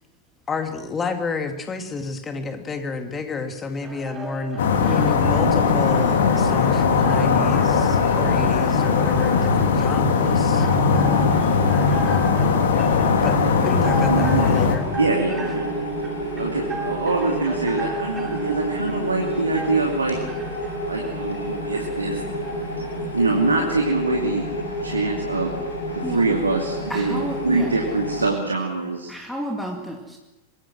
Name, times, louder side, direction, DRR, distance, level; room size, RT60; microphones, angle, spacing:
voice 1, 0.5-10.7 13.2-14.9, left 4 dB, 20° left, 5 dB, 2.7 m, -30 dB
sound 1, 3.8-23.4, right 3 dB, 15° right, 6.7 m, -35 dB
sound 2, 4.6-14.8, left 5 dB, 60° left, 2.7 m, -19 dB
sound 3, 13.8-28.3, equal, 80° left, 7.2 m, -30 dB
voice 2, 14.1-14.6 15.0-15.7 16.3-20.2 20.9-22.2 23.1-24.4 24.8-25.5 26.1-29.1, right 3 dB, 80° right, 0 dB, 2.7 m, -24 dB
voice 3, 26.9-27.7 29.1-30.2, equal, ahead, 1 dB, 2.5 m, -31 dB
25.0 x 22.0 x 6.3 m, 0.99 s
figure-of-eight pair, 90°, 0 cm